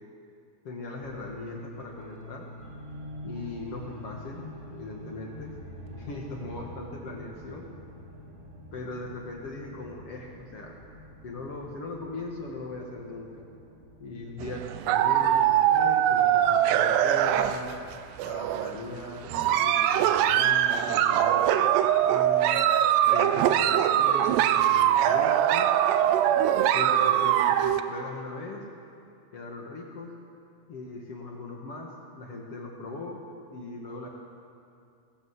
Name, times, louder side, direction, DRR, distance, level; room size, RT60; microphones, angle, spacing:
voice 1, 0.6-2.5 3.2-5.5 5.9-7.6 8.7-10.8 11.2-13.5 14.0-17.7 18.2-22.6 23.1-25.7 26.7-28.6 29.3-30.1 30.7-33.2 33.5-34.1, left 2 dB, 45° left, 0 dB, 2.3 m, -39 dB
sound 1, 1.0-17.3, left 1 dB, 35° right, 1.1 m, -46 dB
sound 2, 14.4-17.9 18.2-18.8 19.3-27.8, right 11 dB, 90° right, 2.9 m, -22 dB
20.5 x 19.0 x 8.3 m, 2.5 s
omnidirectional pair, 4.8 m